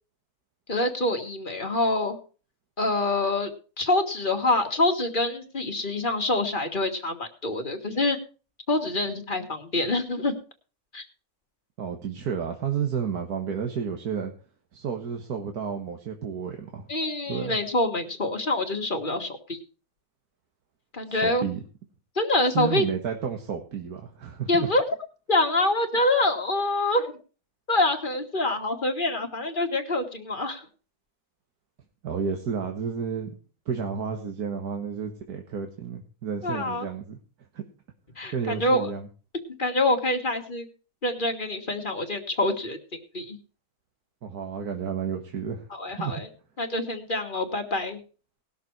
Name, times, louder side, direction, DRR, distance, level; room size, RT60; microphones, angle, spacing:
voice 1, 0.7-2.2 2.8-3.5 3.8-8.2 8.7-10.4 10.9-11.0 16.9-19.6 20.9-21.4 22.2-22.9 24.5-24.8 25.3-27.2 27.7-30.6 36.4-36.9 38.2-38.9 39.5-40.7 41.0-42.8 43.1-43.4 45.7-46.3 46.6-48.0, left 2 dB, 35° left, 4 dB, 1.8 m, -26 dB
voice 2, 11.8-14.3 14.7-16.9 17.3-17.6 21.1-21.6 22.5-24.7 32.0-33.4 33.7-37.2 37.5-37.6 38.3-39.1 44.2-46.2, right 6 dB, 90° right, 4 dB, 1.9 m, -31 dB
19.0 x 6.8 x 4.6 m, 0.36 s
omnidirectional pair, 1.6 m